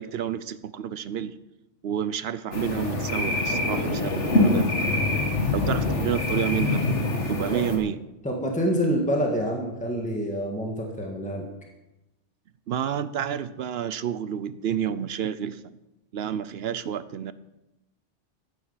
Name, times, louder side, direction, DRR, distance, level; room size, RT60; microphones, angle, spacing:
voice 1, 0.0-1.4 1.8-5.0 5.5-6.8 7.3-8.0 12.7-15.6 16.1-17.3, right 9 dB, 65° right, 15 dB, 0.8 m, -30 dB
sound 1, 2.5-7.8, left 2 dB, 75° left, 2.3 m, -25 dB
voice 2, 8.2-11.5, equal, 5° left, 0 dB, 1.8 m, -27 dB
14.5 x 9.5 x 5.7 m, 0.93 s
omnidirectional pair, 1.2 m